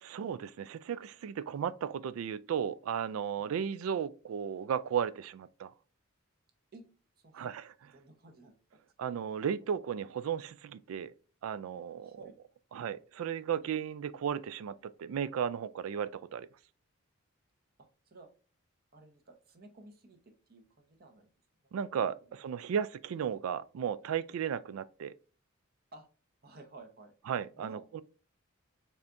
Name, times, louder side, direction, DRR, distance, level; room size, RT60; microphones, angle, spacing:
voice 1, 0.0-5.7 7.3-7.7 9.0-11.1 11.4-12.2 12.7-16.5 21.7-25.1 27.3-28.0, right 8 dB, 75° right, 0.3 m, -35 dB
voice 2, 7.2-7.5 7.8-8.8 12.0-12.4 17.8-18.3 18.9-21.3 22.2-22.3 25.9-26.1 26.4-27.1 27.6-28.0, right 2 dB, 45° right, 0.9 m, -54 dB
4.2 x 3.4 x 2.5 m
head